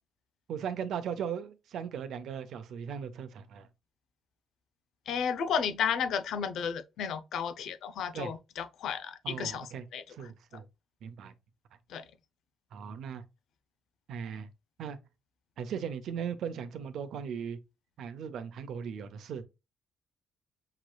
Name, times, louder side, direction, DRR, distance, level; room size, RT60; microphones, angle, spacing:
voice 1, 0.5-3.7 8.1-8.3 9.2-10.7 11.0-11.3 12.7-13.2 14.1-14.5 14.8-15.0 15.6-17.6 18.0-19.4, right 7 dB, 75° right, 0.7 m, -38 dB
voice 2, 5.1-10.3 11.9-12.0, left 7 dB, 75° left, 0.6 m, -33 dB
5.7 x 3.1 x 2.3 m
cardioid pair, 90°, 0 cm